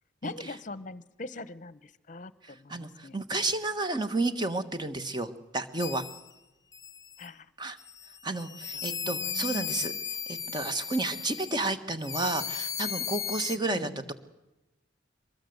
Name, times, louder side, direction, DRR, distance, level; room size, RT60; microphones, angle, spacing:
voice 1, 0.2-3.2 7.2-7.5 8.7-10.0 13.7-14.1, left 2 dB, 40° left, 18 dB, 0.9 m, -43 dB
voice 2, 2.4-6.0 7.6-7.8 8.2-9.9 10.3-14.1, right 2 dB, 20° right, 9 dB, 1.4 m, -31 dB
sound 1, 5.8-6.3 6.7-7.3 7.8-11.7 12.0-13.6, left 7 dB, 20° left, 1.0 m, -36 dB
23.5 x 20.5 x 8.0 m, 1.0 s
head